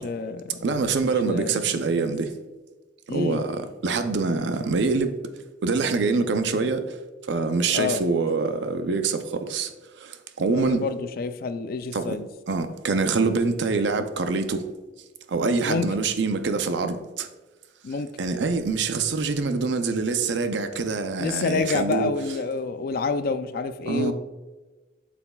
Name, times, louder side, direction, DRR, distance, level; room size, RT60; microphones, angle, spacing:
voice 1, 0.0-0.6 1.0-1.6 3.1-3.4 7.7-8.0 10.5-12.3 15.7-15.9 17.8-18.1 21.2-24.1, left 4 dB, 50° left, 0.4 m, -28 dB
voice 2, 0.6-2.3 3.1-5.2 5.6-7.0 7.3-9.7 10.0-10.9 11.9-12.2 12.5-14.7 15.3-17.3 18.2-22.1 23.9-24.1, right 4 dB, 65° right, 0.5 m, -25 dB
7.8 x 5.8 x 2.3 m
head